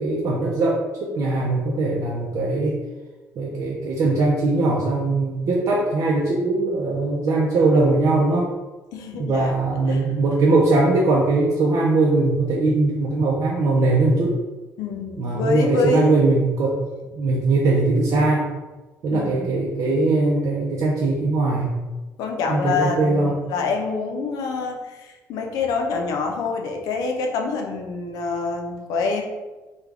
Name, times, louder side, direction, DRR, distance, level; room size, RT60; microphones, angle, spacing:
voice 1, 0.0-2.8 3.4-8.5 9.2-14.3 15.2-16.8 17.1-18.5 19.0-21.7 22.5-23.3, right 2 dB, 60° right, -4 dB, 0.6 m, -20 dB
voice 2, 8.9-9.5 9.9-10.0 14.8-16.3 19.1-19.5 22.2-29.2, left 4 dB, 85° left, 3 dB, 0.5 m, -26 dB
3.5 x 2.3 x 3.3 m, 1.2 s
cardioid pair, 115°, 6 cm